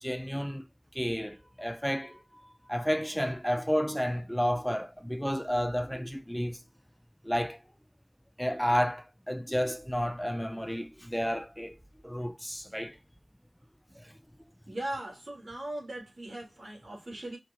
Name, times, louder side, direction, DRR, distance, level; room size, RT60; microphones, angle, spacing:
voice 1, 0.0-0.7 0.9-6.6 7.2-7.6 8.4-11.8 12.0-13.0 13.9-14.1, equal, ahead, 0.4 m, -31 dB
voice 2, 14.7-17.4, right 1 dB, 65° right, 3.0 m, -39 dB
5.1 x 3.3 x 3.0 m
wide cardioid pair, 75°, 0 cm